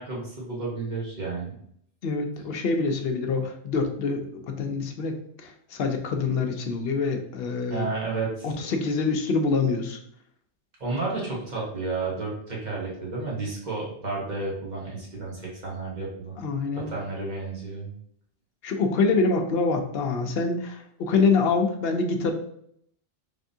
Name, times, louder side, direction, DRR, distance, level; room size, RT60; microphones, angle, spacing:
voice 1, 0.0-1.5 7.7-8.5 10.8-16.4 16.7-17.9, right 3 dB, 40° right, -5 dB, 1.4 m, -32 dB
voice 2, 2.0-7.9 8.4-10.0 16.4-16.9 18.6-22.3, left 4 dB, 65° left, 4 dB, 0.8 m, -25 dB
3.5 x 3.4 x 2.7 m, 0.68 s
omnidirectional pair, 1.2 m